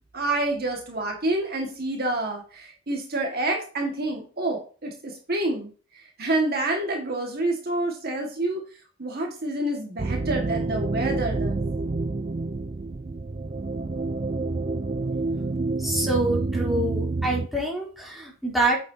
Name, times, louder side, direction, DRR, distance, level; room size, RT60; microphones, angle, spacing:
voice 1, 0.0-8.6 9.0-11.6, right 2 dB, 50° right, 1 dB, 1.9 m, -28 dB
sound 1, 10.0-17.5, right 3 dB, 30° right, 0.4 m, -28 dB
voice 2, 15.8-18.8, right 1 dB, ahead, -4 dB, 3.4 m, -26 dB
8.6 x 7.7 x 2.9 m, 0.39 s
head